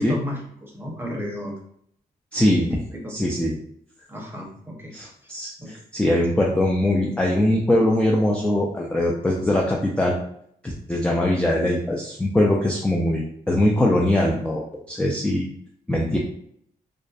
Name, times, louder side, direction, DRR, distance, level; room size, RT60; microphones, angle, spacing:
voice 1, 0.0-1.5 2.9-3.3 4.1-4.9 5.6-5.8, equal, 15° right, -1 dB, 0.7 m, -32 dB
voice 2, 2.3-2.8 3.1-3.5 4.9-10.1 10.6-15.5 15.9-16.2, left 1 dB, 5° left, -2 dB, 0.3 m, -22 dB
2.5 x 2.1 x 2.3 m, 0.69 s
cardioid pair, 75°, 16 cm